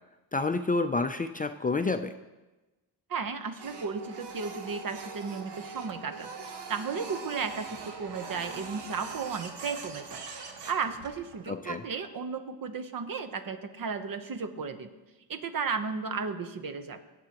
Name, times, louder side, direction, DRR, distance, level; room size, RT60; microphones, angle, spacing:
voice 1, 0.3-2.1 11.5-11.8, left 3 dB, 20° left, 8 dB, 0.4 m, -29 dB
voice 2, 3.1-6.3 6.7-10.2 10.7-14.9 15.3-17.0, right 5 dB, 55° right, 9 dB, 1.0 m, -34 dB
Printer, 3.6-11.5, right 4 dB, 80° right, 1.2 m, -42 dB
17.0 x 7.8 x 3.0 m, 1.1 s
cardioid pair, 80°, 41 cm